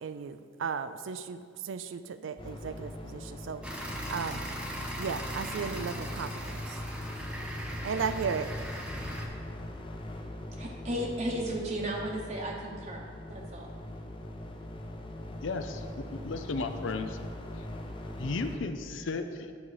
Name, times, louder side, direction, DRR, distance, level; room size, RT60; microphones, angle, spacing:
voice 1, 0.0-4.5 5.0-6.8 7.8-8.5, right 6 dB, 85° right, 11 dB, 0.4 m, -35 dB
sound 1, 2.4-18.6, left 1 dB, 25° left, 0.6 m, -42 dB
sound 2, 3.6-9.3, equal, 5° right, 0.9 m, -37 dB
voice 2, 10.6-13.7, right 1 dB, 40° right, -2 dB, 0.8 m, -35 dB
voice 3, 15.4-17.2 18.2-19.5, left 3 dB, 80° left, 8 dB, 0.6 m, -34 dB
10.5 x 5.5 x 4.8 m, 2.1 s
head